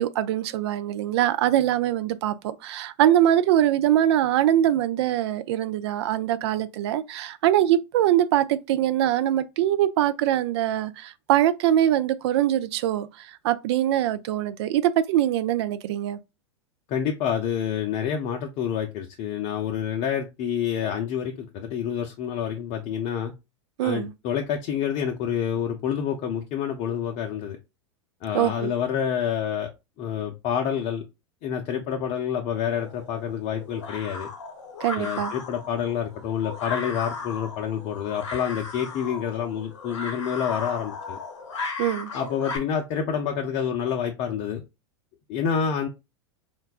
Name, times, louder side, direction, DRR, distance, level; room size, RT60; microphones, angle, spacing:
voice 1, 0.0-16.2 23.8-24.1 28.3-28.7 34.8-35.3 41.8-42.1, right 12 dB, 60° right, 0.4 m, -23 dB
voice 2, 16.9-23.3 23.8-27.6 28.2-29.7 30.0-31.0 31.4-34.3 34.9-41.2 42.1-44.6 45.3-45.9, left 8 dB, 45° left, 0.5 m, -28 dB
sound 1, 32.7-42.6, left 4 dB, 80° left, 0.8 m, -36 dB
3.8 x 2.2 x 2.3 m
hypercardioid pair, 100°, 15 cm